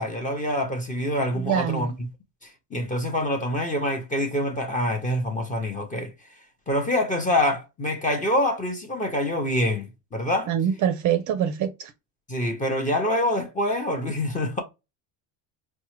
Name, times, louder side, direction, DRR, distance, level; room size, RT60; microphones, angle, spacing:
voice 1, 0.0-1.9 2.4-6.1 6.7-10.5 12.3-14.6, left 1 dB, 15° left, 0.7 m, -26 dB
voice 2, 1.3-1.9 10.5-11.9, right 9 dB, 40° right, 0.5 m, -24 dB
4.5 x 2.2 x 3.0 m
cardioid pair, 135°, 47 cm